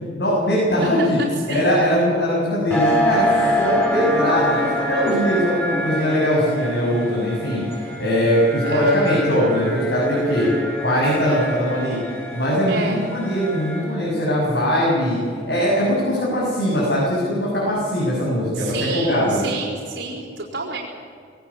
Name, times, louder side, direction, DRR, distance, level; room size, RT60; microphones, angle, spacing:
voice 1, 0.2-1.2 1.5-7.6 8.0-10.5 10.8-12.0 12.3-15.2 15.5-19.5, equal, 70° left, -6 dB, 7.4 m, -21 dB
voice 2, 1.0-1.7 8.6-9.1 12.7-13.0 18.5-20.8, right 3 dB, 80° right, -6 dB, 4.2 m, -29 dB
sound 1, 2.7-14.1, equal, 10° left, 6.4 m, -25 dB
20.5 x 18.0 x 8.6 m, 2.3 s
head